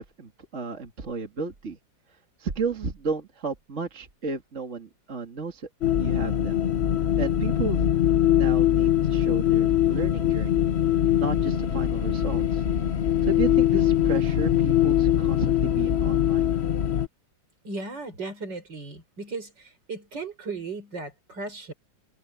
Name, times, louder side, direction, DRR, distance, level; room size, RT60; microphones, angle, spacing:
voice 1, 0.0-1.8 2.4-5.7 6.0-6.6 7.2-10.7 11.2-12.6 13.2-16.6, right 4 dB, 40° right, 2.3 m, -33 dB
sound 1, 5.8-17.1, left 11 dB, 50° left, 0.9 m, -22 dB
voice 2, 17.6-21.7, right 3 dB, 65° right, 5.9 m, -36 dB
omnidirectional pair, 2.1 m